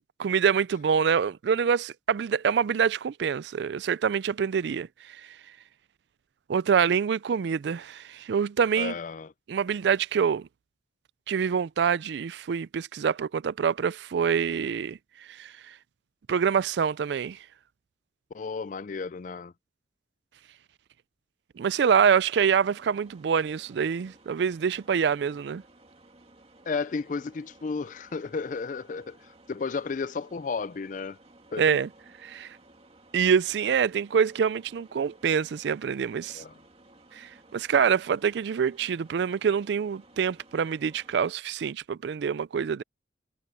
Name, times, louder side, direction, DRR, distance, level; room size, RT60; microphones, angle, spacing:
voice 1, 0.0-5.2 6.5-8.9 9.5-10.5 11.3-15.0 15.3-15.5 16.3-17.4 21.6-25.6 31.6-31.9 32.2-32.6 33.1-36.4 37.1-42.8, right 7 dB, 65° right, 0.3 m, -26 dB
voice 2, 8.8-9.3 18.3-19.5 26.7-31.2 31.5-31.8 36.3-36.5, left 4 dB, 45° left, 0.4 m, -33 dB
sound 1, 22.4-41.3, right 2 dB, 30° right, 2.3 m, -56 dB
head